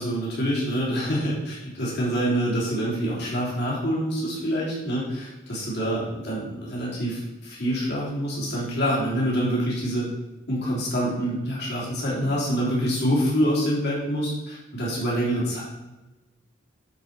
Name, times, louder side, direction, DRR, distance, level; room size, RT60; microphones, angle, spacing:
voice 1, 0.0-10.1 10.5-15.6, equal, 55° left, -5 dB, 3.5 m, -26 dB
11.5 x 5.2 x 4.7 m, 1.1 s
head